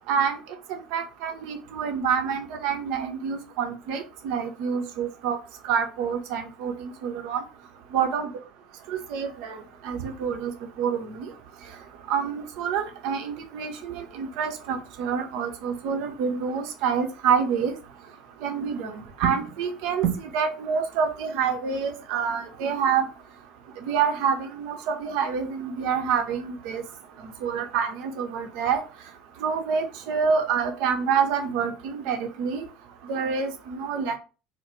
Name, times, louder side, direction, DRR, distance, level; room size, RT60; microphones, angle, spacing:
voice 1, 0.1-0.4 0.7-5.4 5.6-7.4 7.9-8.3 8.9-10.5 10.8-11.3 12.1-17.7 18.4-23.1 23.9-26.8 27.2-28.8 29.4-32.6 33.1-34.2, right 6 dB, 60° right, 6 dB, 0.4 m, -27 dB
2.2 x 2.0 x 3.0 m, 0.33 s
figure-of-eight pair, 65°, 0 cm